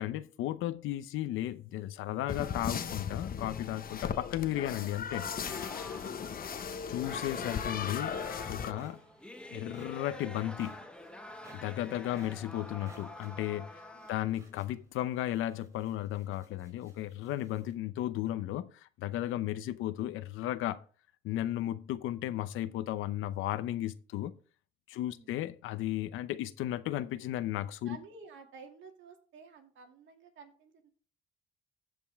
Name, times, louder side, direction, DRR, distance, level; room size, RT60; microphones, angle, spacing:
voice 1, 0.0-5.3 6.9-8.2 8.5-9.0 9.5-10.8 11.5-20.8 21.2-24.4 24.9-28.0, left 13 dB, 90° left, 0.7 m, -35 dB
sound 1, 2.3-8.7, left 7 dB, 45° left, 0.9 m, -37 dB
sound 2, 5.1-14.3, left 1 dB, 5° left, 1.3 m, -47 dB
voice 2, 5.9-6.4 13.9-14.2 24.9-25.4 27.8-30.9, right 5 dB, 75° right, 2.4 m, -53 dB
sound 3, 8.7-17.7, right 2 dB, 15° right, 4.4 m, -60 dB
15.5 x 5.3 x 3.5 m
cardioid pair, 90°, 20 cm